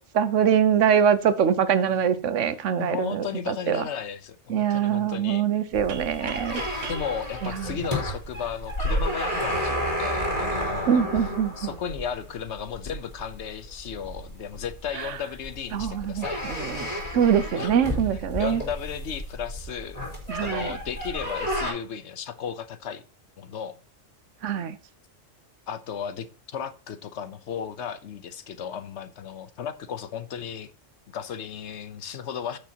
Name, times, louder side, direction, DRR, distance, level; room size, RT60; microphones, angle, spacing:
voice 1, 0.1-3.8 4.5-6.6 7.4-7.8 10.9-11.7 14.9-15.2 15.7-18.6 20.3-20.8 24.4-24.8, right 8 dB, 80° right, 1.1 m, -24 dB
voice 2, 2.8-5.4 6.9-11.0 11.6-16.7 17.5-17.7 18.4-20.0 20.4-23.0 23.4-23.8 25.7-30.7 31.1-32.6, left 7 dB, 70° left, 1.1 m, -35 dB
sound 1, 5.7-21.7, equal, 30° left, 3.9 m, -31 dB
sound 2, 5.9-8.6, right 7 dB, 60° right, 1.0 m, -42 dB
14.0 x 6.7 x 2.9 m
omnidirectional pair, 1.2 m